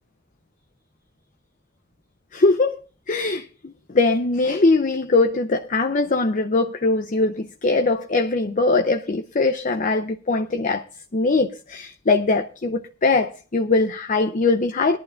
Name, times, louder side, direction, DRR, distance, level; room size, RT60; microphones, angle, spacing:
voice 1, 2.3-2.8 3.1-10.8 11.1-15.0, left 3 dB, 40° left, 0.6 m, -21 dB
21.0 x 11.5 x 2.5 m
head